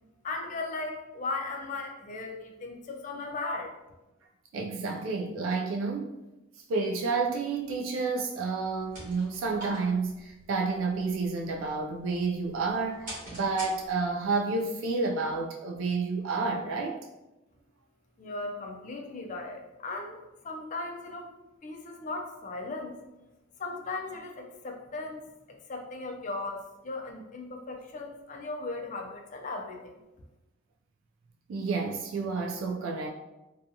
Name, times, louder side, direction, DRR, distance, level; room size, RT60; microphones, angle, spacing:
voice 1, 0.2-3.7 18.2-21.3 21.6-23.0 23.6-30.0, left 3 dB, 40° left, 2 dB, 0.4 m, -37 dB
voice 2, 4.5-6.2 6.7-17.0 31.5-33.1, right 4 dB, 80° right, 1 dB, 0.3 m, -30 dB
sound 1, 8.6-14.3, right 1 dB, 40° right, 1.2 m, -46 dB
2.6 x 2.3 x 2.6 m, 0.99 s
head